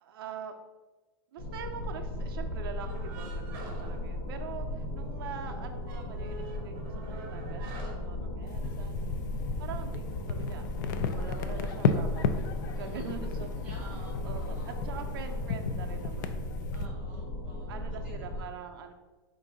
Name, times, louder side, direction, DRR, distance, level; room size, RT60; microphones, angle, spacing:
voice 1, 0.0-0.6 1.3-9.2 9.6-10.7 11.1-12.3 12.8-13.6 14.2-16.4 17.7-18.9, right 7 dB, 85° right, 5 dB, 0.5 m, -44 dB
sound 1, 1.4-18.4, left 1 dB, 90° left, 1.0 m, -36 dB
sound 2, 2.8-4.9 5.2-5.3 5.7-8.9, right 3 dB, 35° right, 0.8 m, -47 dB
sound 3, 8.5-16.9, left 5 dB, 55° left, 0.3 m, -34 dB
voice 2, 8.6-9.0 12.7-13.1 13.6-14.8 16.7-18.4, right 2 dB, 10° right, -4 dB, 1.1 m, -53 dB
3.7 x 2.6 x 4.7 m, 1.2 s
supercardioid pair, 180°, 12 cm